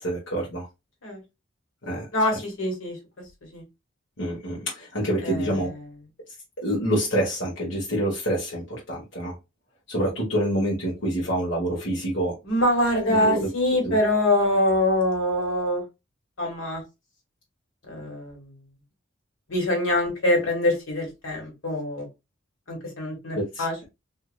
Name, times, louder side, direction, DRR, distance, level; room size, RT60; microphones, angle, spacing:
voice 1, 0.0-0.6 1.9-2.0 4.2-5.7 6.6-9.3 9.9-12.3 13.1-13.5 13.8-14.0 23.4-23.7, right 1 dB, 70° left, 1.2 m, -27 dB
voice 2, 2.1-3.0 3.5-3.6 5.2-5.8 12.4-15.8 16.4-16.8 17.9-18.4 19.5-22.1 22.7-23.8, left 1 dB, 90° left, 1.6 m, -24 dB
3.1 x 2.7 x 2.3 m
head